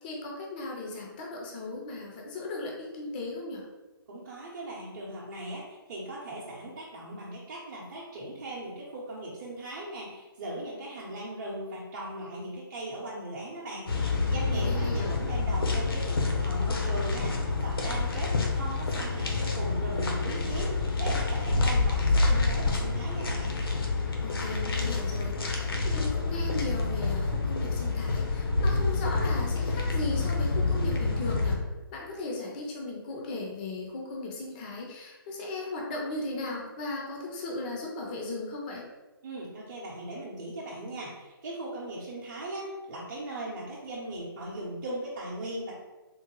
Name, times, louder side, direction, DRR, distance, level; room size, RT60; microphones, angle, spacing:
voice 1, 0.0-3.6 14.5-15.1 24.0-31.6 31.9-38.8, left 2 dB, 20° left, -1 dB, 0.5 m, -37 dB
voice 2, 4.1-23.6 39.2-45.7, right 1 dB, 40° right, -8 dB, 0.7 m, -38 dB
sound 1, 13.9-31.6, left 3 dB, 70° left, 0.7 m, -28 dB
3.7 x 2.1 x 3.0 m, 1.1 s
hypercardioid pair, 155°, 12 cm